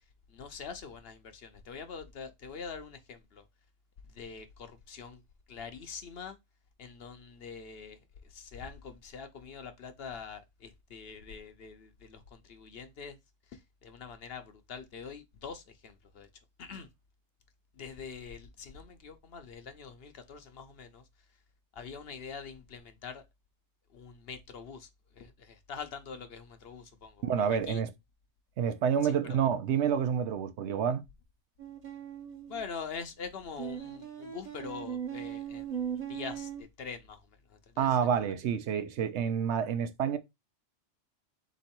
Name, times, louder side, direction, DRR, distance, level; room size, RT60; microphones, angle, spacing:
voice 1, 0.3-3.4 4.1-5.2 5.5-6.4 6.8-8.0 8.3-13.2 13.5-16.3 16.6-16.9 17.7-21.0 21.8-23.2 23.9-24.9 25.1-27.8 29.0-29.4 32.5-35.8 36.1-37.9, left 5 dB, 60° left, 0.8 m, -44 dB
voice 2, 27.2-27.9 28.6-31.0 37.8-40.2, right 8 dB, 70° right, 0.9 m, -28 dB
sound 1, 31.6-32.7 33.6-36.6, right 8 dB, 40° right, 1.0 m, -39 dB
3.9 x 3.1 x 4.3 m
omnidirectional pair, 1.2 m